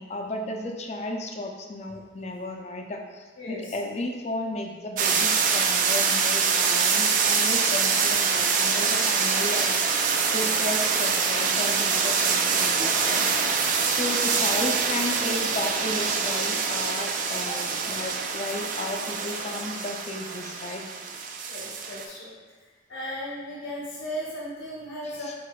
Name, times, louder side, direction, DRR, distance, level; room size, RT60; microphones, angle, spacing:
voice 1, 0.0-9.8 10.3-20.8 25.0-25.3, left 1 dB, 35° left, 3 dB, 0.4 m, -34 dB
voice 2, 3.4-3.7 14.1-14.2 17.5-17.6 21.5-22.3 22.9-25.3, equal, 80° left, -6 dB, 0.8 m, -36 dB
sound 1, 5.0-22.1, right 5 dB, 45° right, 0.3 m, -25 dB
4.8 x 3.8 x 2.2 m, 1.4 s
head